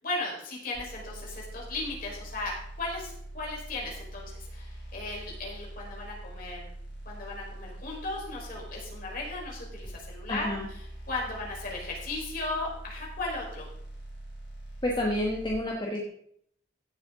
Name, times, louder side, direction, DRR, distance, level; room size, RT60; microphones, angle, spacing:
voice 1, 0.0-6.7 7.0-10.8 11.1-13.7, left 2 dB, 50° left, -3 dB, 4.3 m, -36 dB
sound 1, 0.7-15.5, right 1 dB, 70° left, 5.5 m, -43 dB
voice 2, 10.3-10.7 14.8-16.0, left 1 dB, 25° left, -1 dB, 1.2 m, -29 dB
16.0 x 7.7 x 3.7 m, 0.69 s
head